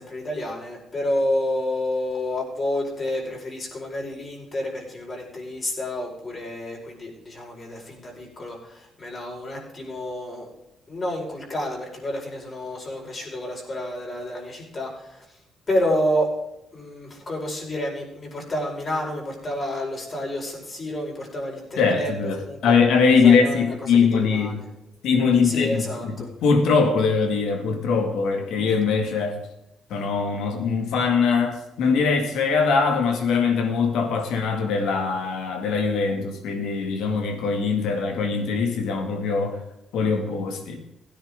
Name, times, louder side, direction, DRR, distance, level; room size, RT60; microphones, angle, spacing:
voice 1, 0.0-10.5 10.9-15.2 15.7-16.3 16.7-22.1 22.4-22.8 23.2-24.6 25.4-26.3, left 1 dB, 40° left, 4.9 m, -29 dB
voice 2, 21.8-24.5 25.0-29.4 29.9-39.6 39.9-40.8, left 5 dB, 85° left, 2.2 m, -22 dB
16.5 x 10.0 x 3.7 m
cardioid pair, 90°, 0 cm